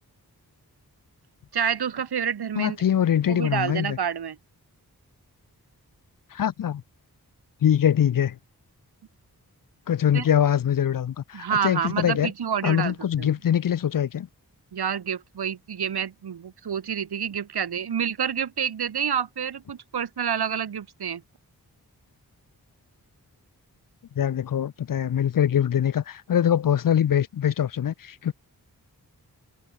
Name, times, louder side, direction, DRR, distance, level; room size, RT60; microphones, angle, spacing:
voice 1, 1.5-2.8 3.3-4.4 10.1-10.2 11.3-13.3 14.7-21.2, right 8 dB, 85° right, 1.4 m, -28 dB
voice 2, 2.6-4.0 6.3-6.8 7.6-8.4 9.9-12.3 12.6-14.3 24.2-28.3, left 9 dB, 60° left, 0.6 m, -23 dB
cardioid pair, 50°, 38 cm